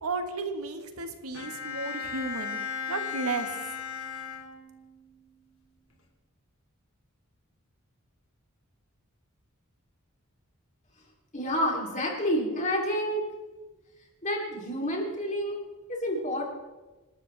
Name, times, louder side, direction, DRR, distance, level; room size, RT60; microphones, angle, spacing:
voice 1, 0.0-2.6 2.9-3.5, right 3 dB, 80° right, 6 dB, 1.5 m, -33 dB
Bowed string instrument, 1.3-5.0, left 6 dB, 75° left, 2.4 m, -36 dB
voice 2, 11.3-13.2 14.2-15.6 15.9-16.4, equal, 35° left, -1 dB, 3.2 m, -29 dB
26.5 x 12.0 x 3.4 m, 1.2 s
head